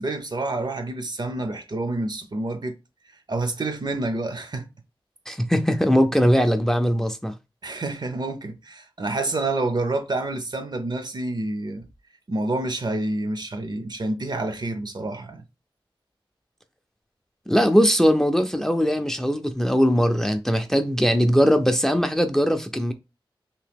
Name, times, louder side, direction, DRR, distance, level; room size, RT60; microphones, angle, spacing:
voice 1, 0.0-2.8 3.3-4.7 7.6-11.8 12.3-15.4, right 2 dB, 50° right, 0.6 m, -28 dB
voice 2, 5.3-7.3 17.5-22.9, equal, 5° left, 0.4 m, -20 dB
2.9 x 2.8 x 3.4 m
wide cardioid pair, 70°, 9 cm